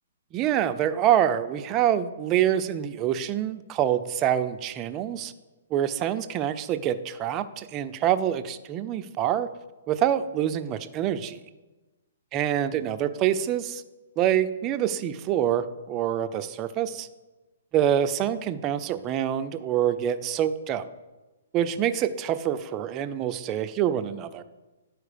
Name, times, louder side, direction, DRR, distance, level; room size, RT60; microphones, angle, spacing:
voice 1, 0.3-5.3 5.7-9.5 9.9-11.4 12.3-13.8 14.2-17.1 17.7-20.9 21.5-24.4, right 10 dB, 25° right, 10 dB, 0.4 m, -26 dB
11.0 x 4.5 x 5.0 m, 1.1 s
hypercardioid pair, 145°, 0 cm